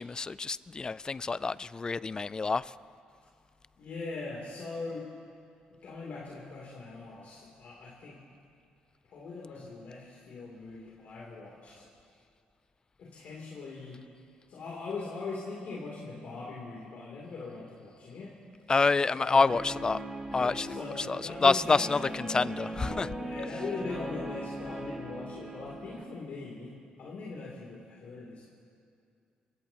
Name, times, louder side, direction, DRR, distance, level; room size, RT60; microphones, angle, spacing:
voice 1, 0.0-2.7 18.7-20.0 20.3-23.1, left 4 dB, 25° left, 18 dB, 0.4 m, -27 dB
voice 2, 3.8-5.1 5.8-8.2 9.1-11.8 13.0-14.0 14.5-18.4 19.1-19.5 20.3-21.6 23.1-28.5, left 3 dB, 65° left, -5 dB, 3.1 m, -41 dB
Guitar, 19.5-26.0, right 1 dB, 10° right, 1.9 m, -39 dB
29.5 x 16.0 x 3.0 m, 2.4 s
cardioid pair, 90°, 3 cm